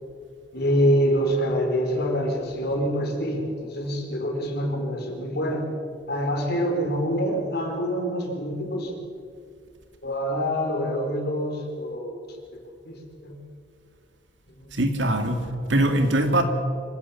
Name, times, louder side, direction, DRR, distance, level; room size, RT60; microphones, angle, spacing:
voice 1, 0.5-5.7 6.1-9.0 10.0-12.2 12.5-12.6 12.8-13.4 14.5-14.7 15.0-15.1 16.0-16.1, equal, 60° left, 4.3 m, -26 dB
voice 2, 14.7-16.4, right 1 dB, 85° right, 2.3 m, -22 dB
25.5 x 16.0 x 7.2 m
head